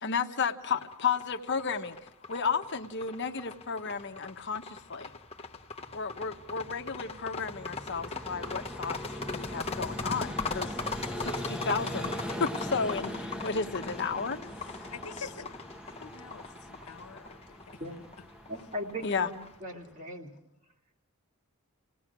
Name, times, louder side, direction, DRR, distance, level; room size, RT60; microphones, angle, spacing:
voice 1, 0.0-2.0 2.3-5.1 5.9-10.7 11.2-12.1 12.4-14.9 19.0-19.3, left 5 dB, 55° left, 6 dB, 1.1 m, -33 dB
sound 1, 0.7-19.5, left 4 dB, 30° left, 1.0 m, -40 dB
Vehicle, 5.2-19.9, equal, 5° right, 0.8 m, -41 dB
voice 2, 14.9-15.5 15.8-17.8, left 5 dB, 90° left, 10 dB, 1.0 m, -46 dB
voice 3, 18.5-20.3, equal, 35° right, 1 dB, 2.7 m, -39 dB
29.5 x 18.5 x 6.1 m, 0.81 s
head